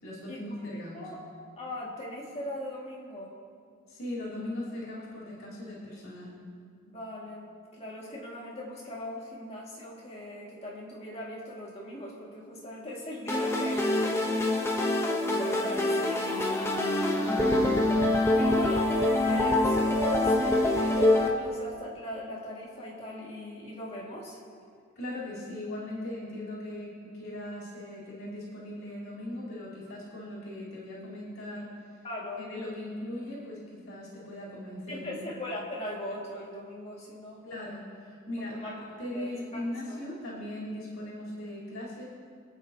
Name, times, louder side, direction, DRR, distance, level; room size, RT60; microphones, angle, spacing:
voice 1, 0.0-1.0 3.9-6.4 25.0-31.7 32.4-35.3 37.4-42.1, left 1 dB, 80° left, -7 dB, 4.0 m, -39 dB
voice 2, 1.6-3.3 6.8-14.8 15.3-18.9 19.2-24.4 32.0-32.5 34.9-37.4 38.4-38.8 39.1-40.0, left 1 dB, 30° left, -4 dB, 2.3 m, -40 dB
sound 1, 13.3-21.3, left 1 dB, 10° left, 1.0 m, -25 dB
26.0 x 9.1 x 3.0 m, 2.2 s
head